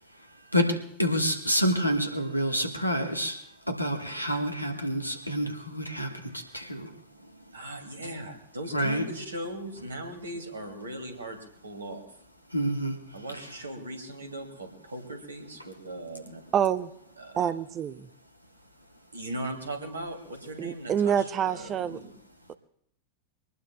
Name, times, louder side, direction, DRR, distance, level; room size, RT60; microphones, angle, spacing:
voice 1, 0.5-3.4 3.7-6.9 8.7-9.0 12.5-13.0, equal, 90° left, 5 dB, 1.5 m, -28 dB
voice 2, 7.5-12.1 13.1-16.5 17.2-17.5 19.1-22.1, right 1 dB, 75° right, 5 dB, 2.4 m, -39 dB
voice 3, 16.5-16.9 17.4-18.1 20.6-22.0, right 8 dB, 30° right, 14 dB, 0.6 m, -27 dB
23.5 x 19.0 x 2.3 m, 0.72 s
figure-of-eight pair, 90°, 0 cm